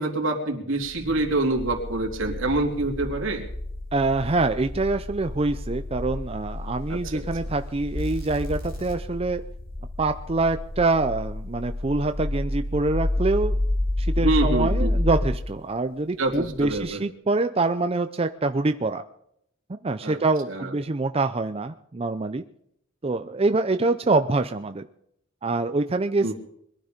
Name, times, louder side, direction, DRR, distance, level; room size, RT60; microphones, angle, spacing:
voice 1, 0.0-3.5 6.9-7.3 14.2-14.9 16.2-17.0 20.0-20.2 20.5-20.7 26.2-26.3, right 2 dB, 80° right, 1 dB, 3.2 m, -26 dB
sound 1, 0.8-15.3 16.3-16.9, left 1 dB, 45° left, 6.7 m, -30 dB
voice 2, 3.9-9.4 10.0-13.6 14.0-19.0 19.8-22.4 23.0-24.8 25.4-26.3, right 3 dB, 30° right, 8 dB, 0.5 m, -25 dB
22.0 x 12.0 x 5.2 m, 0.72 s
head